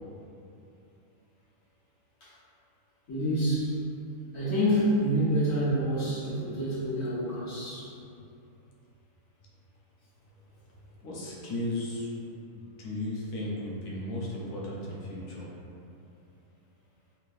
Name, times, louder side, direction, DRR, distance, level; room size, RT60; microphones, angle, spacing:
voice 1, 3.1-3.8 4.3-7.9, equal, 60° left, -12 dB, 1.6 m, -27 dB
voice 2, 11.0-12.1 12.8-15.5, left 1 dB, 80° left, -4 dB, 1.2 m, -35 dB
3.7 x 3.1 x 2.5 m, 2.7 s
omnidirectional pair, 1.6 m